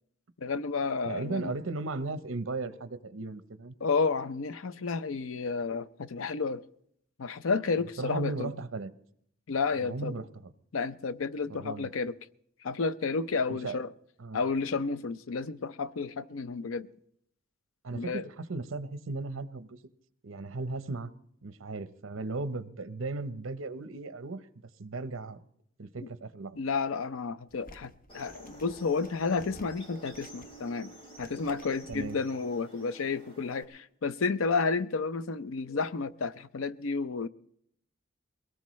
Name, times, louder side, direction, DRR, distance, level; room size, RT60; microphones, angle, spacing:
voice 1, 0.4-1.5 3.8-6.6 7.2-8.5 9.5-10.1 10.7-12.1 12.6-13.9 14.3-16.9 17.9-18.2 26.6-30.9 31.2-37.3, left 4 dB, 75° left, 0.6 m, -31 dB
voice 2, 1.0-3.7 7.8-8.9 9.8-10.5 11.5-11.9 13.5-13.8 14.2-14.4 17.8-19.8 20.2-21.1 21.4-24.4 24.8-25.4 25.8-26.6 31.9-32.2, right 3 dB, 75° right, 0.8 m, -36 dB
sound 1, 27.5-32.1, equal, 45° left, 1.1 m, -54 dB
sound 2, 28.1-33.6, right 1 dB, 30° left, 3.3 m, -51 dB
22.0 x 18.0 x 3.1 m
head